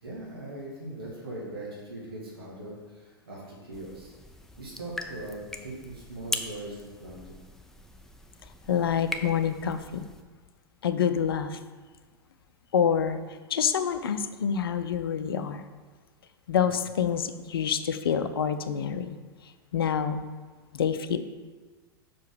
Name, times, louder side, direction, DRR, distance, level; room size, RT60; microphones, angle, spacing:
voice 1, 0.0-4.1 4.6-7.3 16.6-16.7, right 1 dB, 70° right, -4 dB, 1.9 m, -40 dB
sound 1, 3.7-10.2, left 1 dB, 5° left, 0.5 m, -40 dB
voice 2, 8.7-10.1 10.8-11.6 12.7-13.2 13.5-15.6 16.5-19.2 19.7-20.3 20.7-21.2, left 8 dB, 70° left, 10 dB, 0.5 m, -27 dB
6.0 x 4.7 x 6.1 m, 1.4 s
figure-of-eight pair, 90°, 13 cm